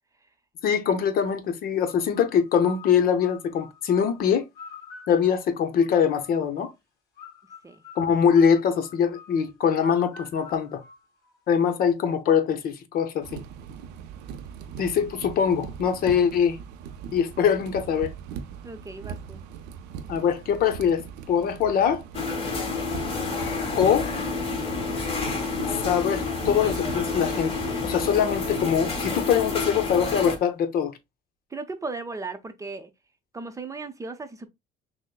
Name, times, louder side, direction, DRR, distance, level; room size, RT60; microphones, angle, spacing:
voice 1, 0.6-4.5 5.1-6.7 8.0-10.8 11.5-13.3 14.8-16.6 17.1-18.1 20.1-22.0 23.7-24.1 25.7-30.9, left 7 dB, 60° left, 0.8 m, -23 dB
sound 1, 1.8-6.5 7.2-11.6, left 6 dB, 20° left, 2.7 m, -48 dB
sound 2, 13.2-29.1, right 7 dB, 90° right, 0.6 m, -41 dB
voice 2, 18.6-19.4 31.5-32.9 33.3-34.5, right 3 dB, 20° right, 0.6 m, -36 dB
sound 3, 22.1-30.4, left 4 dB, 35° left, 1.5 m, -29 dB
6.2 x 2.1 x 2.3 m
cardioid pair, 110°, 17 cm